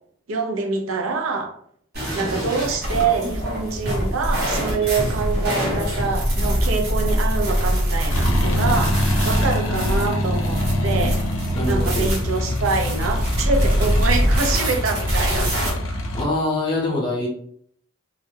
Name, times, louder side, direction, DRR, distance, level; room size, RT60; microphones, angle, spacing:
voice 1, 0.3-1.5 2.1-11.2 11.7-15.5, right 4 dB, 90° right, 4 dB, 0.5 m, -25 dB
sound 1, 1.9-15.7, equal, 55° right, 0.9 m, -23 dB
sound 2, 8.1-16.2, left 1 dB, 80° left, 0.6 m, -25 dB
voice 2, 11.5-12.2 16.1-17.3, left 2 dB, 25° left, -2 dB, 0.7 m, -24 dB
2.3 x 2.1 x 3.1 m, 0.63 s
head